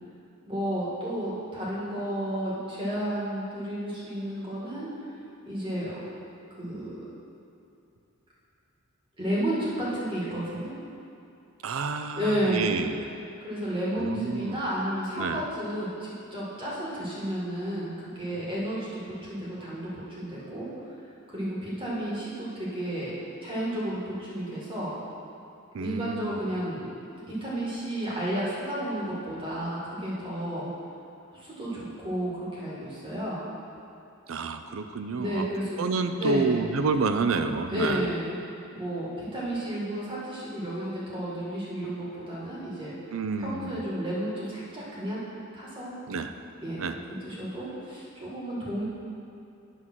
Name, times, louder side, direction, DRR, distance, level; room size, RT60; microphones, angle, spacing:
voice 1, 0.4-5.1 5.4-6.0 6.6-7.0 9.2-10.7 12.2-12.7 13.4-20.9 21.3-23.1 23.4-24.9 25.8-26.9 27.3-30.7 31.3-33.4 35.2-35.8 36.2-36.6 37.7-38.4 38.7-42.9 43.4-45.2 45.5-46.0 46.6-48.8, right 1 dB, 25° right, -7 dB, 2.0 m, -32 dB
voice 2, 11.6-13.1 14.0-14.6 15.1-15.4 25.7-26.4 34.3-35.5 35.8-38.1 43.1-43.8 46.1-46.3 46.8-47.0, right 4 dB, 70° right, 8 dB, 0.5 m, -29 dB
9.8 x 3.7 x 6.1 m, 2.7 s
head